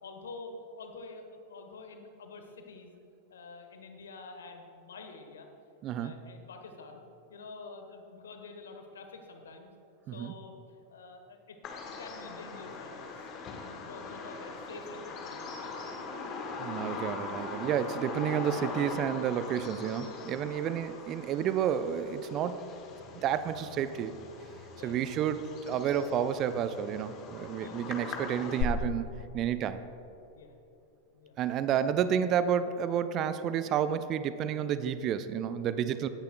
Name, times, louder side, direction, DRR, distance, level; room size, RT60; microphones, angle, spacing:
voice 1, 0.0-3.0 3.3-5.5 6.0-7.0 7.3-9.7 10.1-10.5 10.9-13.3 13.8-15.9 20.4-20.8 24.7-25.2 27.6-27.8 30.3-30.5 31.1-31.3, left 3 dB, 65° left, 5 dB, 1.2 m, -47 dB
voice 2, 5.8-6.1 10.1-10.3 16.6-22.7 23.2-24.1 24.8-29.0 29.3-29.8 31.4-36.1, right 9 dB, 35° right, 12 dB, 0.4 m, -30 dB
Bird vocalization bird call bird song, 11.6-28.6, left 4 dB, 35° left, 1.4 m, -41 dB
17.0 x 10.5 x 2.3 m, 2.9 s
figure-of-eight pair, 90°, 0 cm